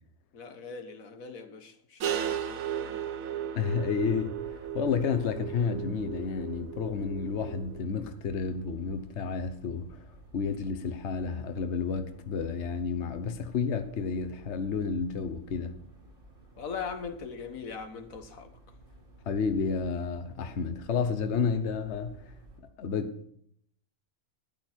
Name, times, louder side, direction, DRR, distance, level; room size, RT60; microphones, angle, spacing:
voice 1, 0.3-3.1 16.6-18.5, left 5 dB, 85° left, 1.7 m, -40 dB
sound 1, 2.0-7.8, right 9 dB, 85° right, 1.3 m, -36 dB
voice 2, 3.5-10.1 10.3-15.7 19.3-22.3 22.8-23.3, left 5 dB, 60° left, 1.2 m, -31 dB
sound 2, 3.8-22.6, right 1 dB, 40° right, 3.0 m, -54 dB
12.5 x 11.0 x 4.5 m
omnidirectional pair, 1.4 m